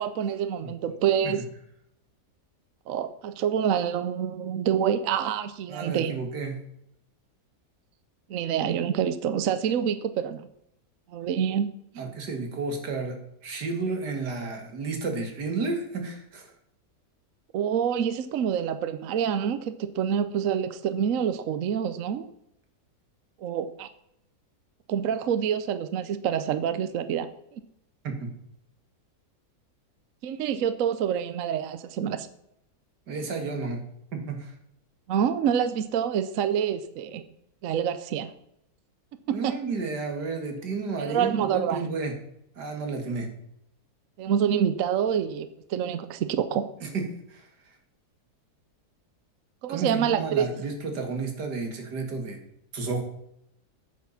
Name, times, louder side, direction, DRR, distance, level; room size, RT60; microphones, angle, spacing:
voice 1, 0.0-1.4 2.9-6.2 8.3-10.4 11.1-11.7 17.5-22.3 23.4-23.9 24.9-27.3 27.5-27.6 30.2-32.3 35.1-37.2 37.6-38.3 39.3-39.5 41.0-41.8 44.2-46.6 49.6-50.5, right 8 dB, 65° right, 12 dB, 1.0 m, -27 dB
voice 2, 5.7-6.6 12.0-13.2 13.4-16.5 28.0-28.3 33.1-33.9 34.1-34.5 39.3-42.1 42.6-43.3 46.8-47.0 47.3-47.4 49.7-52.4 52.7-53.0, right 4 dB, 90° right, 4 dB, 2.5 m, -31 dB
9.4 x 7.0 x 5.7 m, 0.77 s
omnidirectional pair, 1.7 m